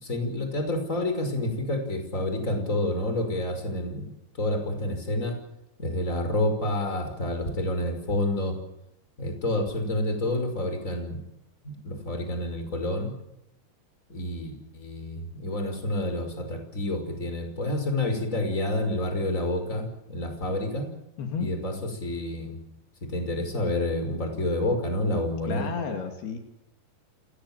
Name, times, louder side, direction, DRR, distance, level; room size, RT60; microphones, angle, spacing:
voice 1, 0.0-4.1 4.4-5.4 5.8-8.5 9.2-11.2 11.6-13.1 14.1-20.9 21.4-21.7 22.0-22.6 23.0-25.7, left 1 dB, 20° left, 6 dB, 5.6 m, -29 dB
voice 2, 21.2-21.5 25.4-26.4, left 6 dB, 75° left, 5 dB, 4.8 m, -32 dB
28.0 x 19.5 x 7.5 m, 0.87 s
omnidirectional pair, 4.6 m